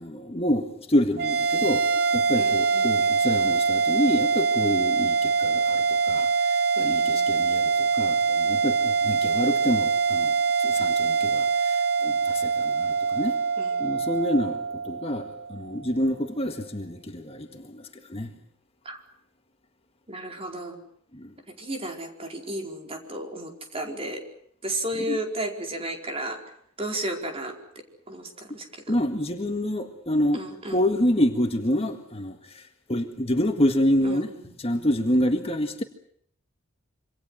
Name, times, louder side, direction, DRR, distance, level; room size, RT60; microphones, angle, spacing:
voice 1, 0.0-10.3 10.6-13.4 13.8-18.3 21.1-21.3 25.1-25.2 28.9-30.4 30.7-34.3 34.6-35.8, left 1 dB, 30° left, 5 dB, 1.8 m, -27 dB
sound 1, 1.2-15.8, right 5 dB, 50° right, 1.1 m, -24 dB
voice 2, 2.3-3.2 6.8-7.5 13.6-14.1 18.8-19.0 20.1-20.8 21.5-24.2 24.6-26.4 26.8-27.6 28.1-28.9 30.3-30.8 34.0-34.9, right 1 dB, 30° right, 3 dB, 4.8 m, -34 dB
27.5 x 26.0 x 6.4 m, 0.66 s
head